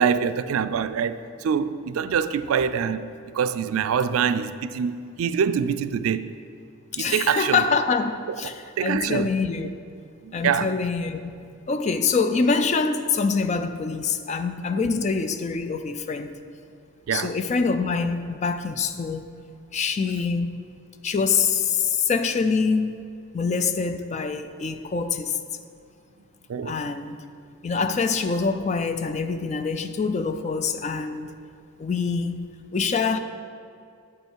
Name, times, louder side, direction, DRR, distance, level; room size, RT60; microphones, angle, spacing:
voice 1, 0.0-3.0 3.3-6.3 7.0-7.6 8.8-9.3 10.2-10.7 14.9-15.0 17.1-17.3 26.5-26.8, right 7 dB, 85° right, 0.3 m, -24 dB
voice 2, 6.9-9.7 10.3-16.4 17.1-19.3 19.7-20.6 21.0-23.0 23.3-25.4 26.6-27.2 27.6-31.3 31.8-33.2, left 5 dB, 35° left, 0.3 m, -25 dB
8.6 x 5.5 x 4.5 m
head